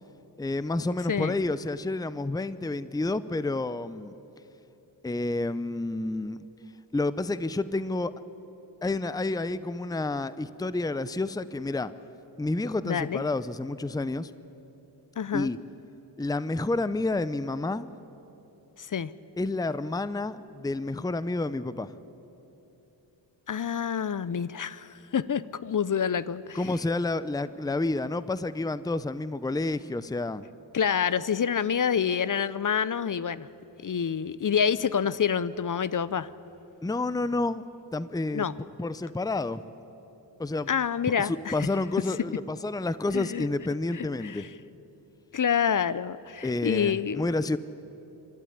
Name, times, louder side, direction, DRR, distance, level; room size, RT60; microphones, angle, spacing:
voice 1, 0.4-4.1 5.0-6.4 6.9-8.1 8.8-11.9 12.4-14.3 15.3-15.6 16.2-17.9 19.4-22.0 26.5-30.4 36.8-37.6 37.9-38.4 38.8-39.7 40.4-40.7 41.2-44.5 46.4-47.6, left 2 dB, 10° left, 15 dB, 0.7 m, -29 dB
voice 2, 12.8-13.2 15.2-15.5 18.8-19.1 23.5-26.6 30.7-33.5 33.8-36.3 38.3-38.5 40.7-41.7 43.1-43.5 43.9-44.5 45.3-47.2, left 7 dB, 45° left, 17 dB, 0.7 m, -27 dB
25.5 x 12.5 x 9.8 m, 3.0 s
cardioid pair, 50°, 45 cm